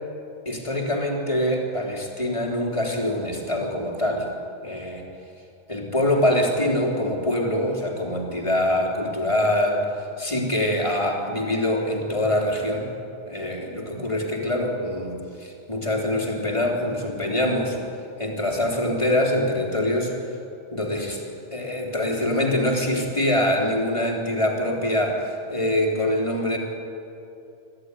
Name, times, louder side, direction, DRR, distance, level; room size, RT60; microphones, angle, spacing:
voice 1, 0.5-4.3 4.6-5.0 5.7-9.9 10.2-12.9 13.2-17.8 18.2-20.1 20.7-21.2 21.5-25.2 25.5-26.6, left 1 dB, 25° left, -1 dB, 3.6 m, -24 dB
25.5 x 15.0 x 9.8 m, 2.6 s
omnidirectional pair, 1.3 m